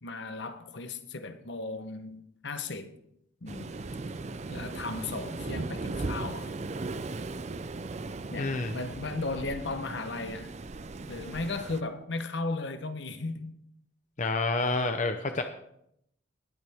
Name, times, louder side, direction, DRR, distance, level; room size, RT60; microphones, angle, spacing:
voice 1, 0.0-2.9 3.4-3.8 4.5-6.5 8.3-10.5 11.1-13.5, left 3 dB, 60° left, 1.0 m, -36 dB
Waves surf, 3.5-11.8, right 3 dB, 35° right, 0.4 m, -37 dB
voice 2, 8.4-8.7 14.2-15.4, left 3 dB, 40° left, 0.7 m, -28 dB
20.0 x 8.6 x 3.5 m
head